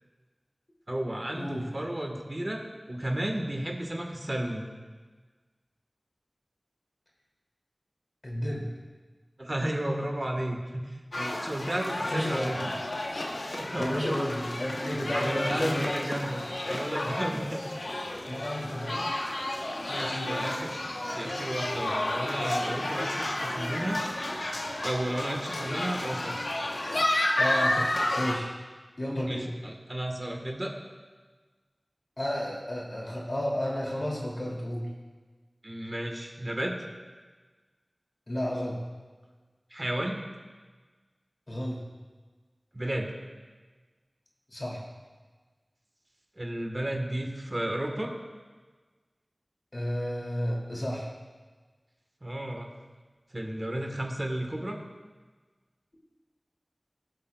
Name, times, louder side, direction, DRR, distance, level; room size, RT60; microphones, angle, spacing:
voice 1, 0.9-4.6 9.4-12.7 13.5-14.0 15.1-17.6 19.9-20.7 21.1-24.0 24.8-26.5 29.3-30.7 35.6-36.8 39.7-40.1 42.7-43.1 46.4-48.1 52.2-52.7 53.3-54.8, right 1 dB, 40° right, 2 dB, 1.3 m, -33 dB
voice 2, 8.2-8.7 12.1-12.6 13.8-16.1 18.3-19.1 20.0-20.6 27.4-28.5 29.0-29.5 32.2-34.9 38.3-38.8 41.5-41.8 44.5-44.8 49.7-51.1, equal, 55° left, -3 dB, 2.6 m, -32 dB
sound 1, 11.1-28.3, left 1 dB, 85° left, 0.9 m, -31 dB
17.0 x 7.8 x 2.3 m, 1.3 s
wide cardioid pair, 45°, 0 cm